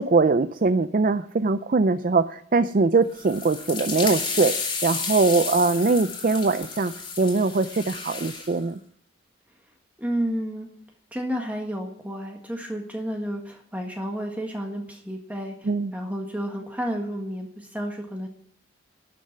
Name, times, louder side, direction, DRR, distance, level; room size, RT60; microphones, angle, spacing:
voice 1, 0.0-8.8 15.6-15.9, right 3 dB, 45° right, 11 dB, 0.5 m, -22 dB
sound 1, 3.1-8.5, left 4 dB, 25° left, 2.7 m, -32 dB
voice 2, 10.0-10.7 11.1-18.3, equal, 10° right, 1 dB, 1.6 m, -31 dB
12.0 x 6.7 x 9.7 m, 0.63 s
head